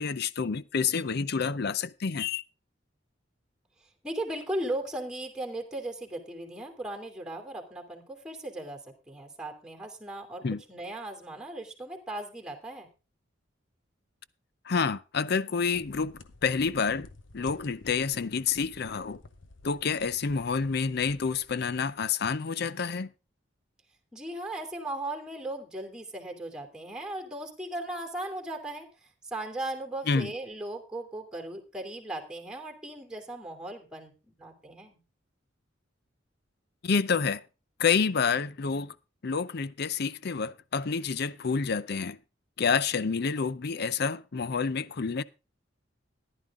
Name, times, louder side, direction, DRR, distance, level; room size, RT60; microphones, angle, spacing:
voice 1, 0.0-2.4 10.4-10.6 14.7-17.1 17.3-19.2 19.6-23.1 30.1-30.3 36.8-37.4 37.8-38.9 39.2-42.2 42.6-45.2, left 5 dB, 55° left, 0.6 m, -28 dB
voice 2, 4.0-8.8 9.1-10.4 10.7-12.9 24.1-28.9 29.3-34.1 34.4-35.0, right 1 dB, 5° right, 2.8 m, -37 dB
sound 1, 15.7-22.1, left 2 dB, 85° left, 1.1 m, -53 dB
14.5 x 11.0 x 3.6 m
head